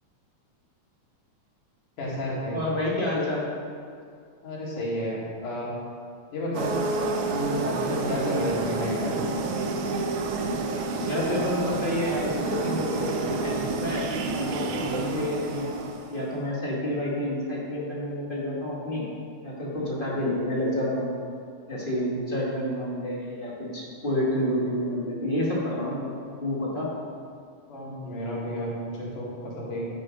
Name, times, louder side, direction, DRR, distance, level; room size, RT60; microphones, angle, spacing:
voice 1, 2.0-2.6 4.4-5.7 6.3-9.2 27.7-29.9, equal, 90° left, -6 dB, 4.1 m, -31 dB
voice 2, 2.5-3.5 11.1-15.7 16.1-19.1 19.4-21.1 21.7-26.1 26.4-26.9, left 1 dB, 20° left, -6 dB, 1.6 m, -29 dB
sound 1, 6.5-16.3, right 3 dB, 75° right, 2.3 m, -29 dB
10.0 x 9.1 x 5.2 m, 2.3 s
omnidirectional pair, 3.4 m